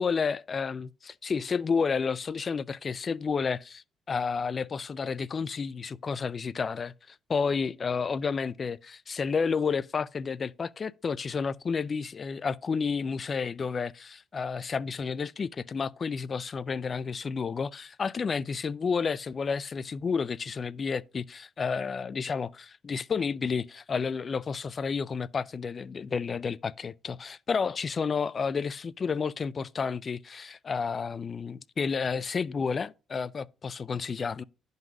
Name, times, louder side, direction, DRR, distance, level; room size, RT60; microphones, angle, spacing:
voice 1, 0.0-34.4, left 5 dB, 40° left, 0.4 m, -31 dB
10.5 x 4.0 x 4.7 m
supercardioid pair, 75°, 0 cm